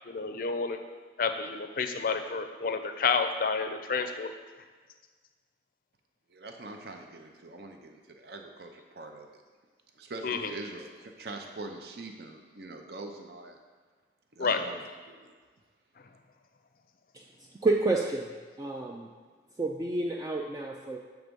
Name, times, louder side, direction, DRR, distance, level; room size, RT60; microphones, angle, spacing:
voice 1, 0.1-0.8 1.2-4.3 10.2-10.5 14.4-14.6, left 5 dB, 50° left, 7 dB, 0.4 m, -29 dB
voice 2, 6.3-9.4 10.0-13.6 14.3-15.3, right 2 dB, 55° right, 3 dB, 0.6 m, -43 dB
voice 3, 17.6-19.1 19.6-21.0, right 2 dB, 20° right, -1 dB, 0.3 m, -30 dB
7.4 x 3.5 x 5.2 m, 1.5 s
head